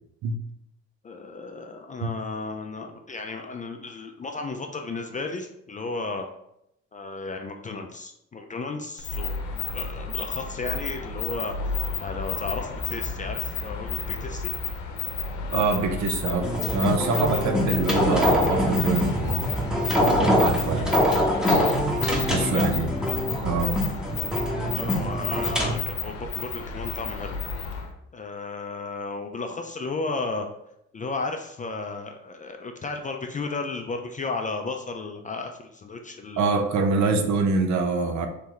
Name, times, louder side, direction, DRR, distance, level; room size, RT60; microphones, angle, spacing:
voice 1, 1.0-6.3 6.9-14.5 21.9-22.7 24.7-27.4 28.1-30.5 30.9-36.6, left 3 dB, 25° left, 4 dB, 0.4 m, -34 dB
sound 1, 9.0-27.9, left 5 dB, 75° left, 0.7 m, -32 dB
voice 2, 15.5-19.4 20.1-20.9 22.2-22.9 23.4-23.8 24.1-24.2 25.6-25.8 36.4-38.3, right 4 dB, 70° right, 6 dB, 0.6 m, -25 dB
sound 2, 16.4-25.7, equal, ahead, 0.9 m, -24 dB
3.2 x 2.9 x 3.7 m, 0.79 s
cardioid pair, 90°, 30 cm